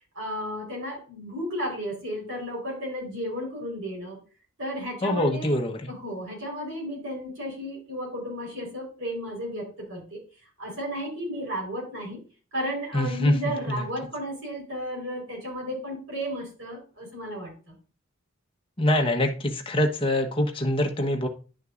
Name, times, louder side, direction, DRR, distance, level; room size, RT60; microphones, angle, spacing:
voice 1, 0.1-4.2 4.6-5.5 5.9-10.2 10.6-12.2 12.5-17.7, equal, 65° right, -1 dB, 4.5 m, -33 dB
voice 2, 5.0-5.9 12.9-13.3 13.7-13.8 18.8-21.3, left 1 dB, 25° left, 3 dB, 1.1 m, -24 dB
11.0 x 6.3 x 2.6 m, 0.36 s
head